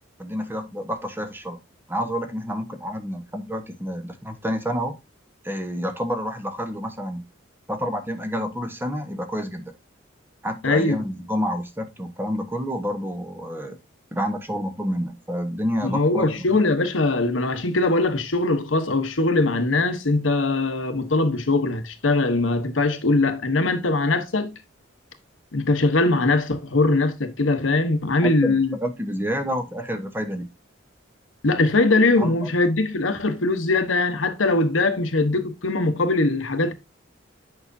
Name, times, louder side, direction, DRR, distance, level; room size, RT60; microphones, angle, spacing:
voice 1, 0.2-1.6 1.9-4.9 5.4-7.2 7.7-9.7 10.4-13.8 14.1-16.6 28.2-30.5 32.2-32.5, equal, 10° right, 1.1 m, -29 dB
voice 2, 10.6-11.0 15.8-24.5 25.5-28.8 31.4-36.7, left 2 dB, 85° left, 1.1 m, -21 dB
9.1 x 5.9 x 2.6 m
head